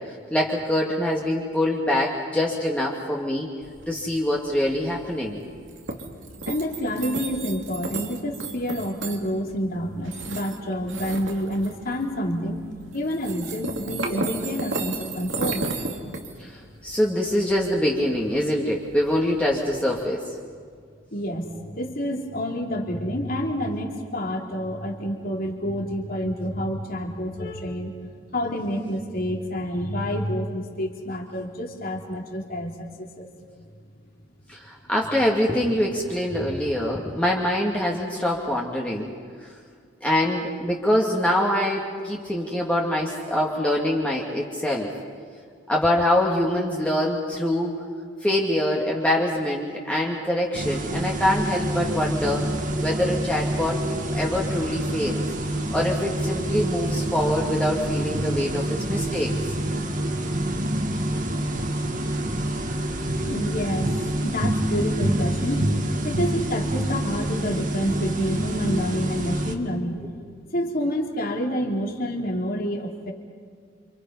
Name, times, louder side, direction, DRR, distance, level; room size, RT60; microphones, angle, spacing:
voice 1, 0.1-3.5 3.9-5.4 16.4-20.2 34.5-39.1 39.4-39.5 40.0-44.9 45.7-47.7 48.2-52.4 52.8-53.8 54.1-55.2 55.7-59.3, left 1 dB, 5° left, -3 dB, 2.2 m, -24 dB
sound 1, 3.6-20.0, right 3 dB, 70° right, 2.7 m, -35 dB
voice 2, 6.4-12.6 12.9-15.7 21.1-27.9 28.3-33.3 63.3-63.9 64.2-65.6 66.0-70.0 70.5-73.1, equal, 50° left, 0 dB, 3.5 m, -28 dB
sound 2, 50.5-69.6, right 1 dB, 40° right, 2.0 m, -27 dB
29.0 x 27.5 x 5.6 m, 2.1 s
head